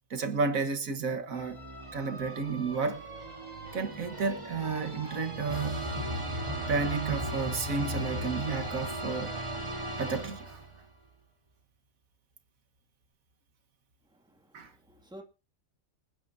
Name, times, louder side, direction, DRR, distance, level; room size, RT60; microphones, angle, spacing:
voice 1, 0.1-1.6 1.9-3.1 3.7-5.9 6.7-9.3 10.0-10.6 14.5-14.7, right 4 dB, 80° right, 1.8 m, -32 dB
sound 1, 1.3-10.8, equal, 20° right, 3.3 m, -37 dB
voice 2, 14.1-15.2, right 1 dB, 5° right, 2.1 m, -52 dB
26.5 x 9.7 x 2.7 m
omnidirectional pair, 1.4 m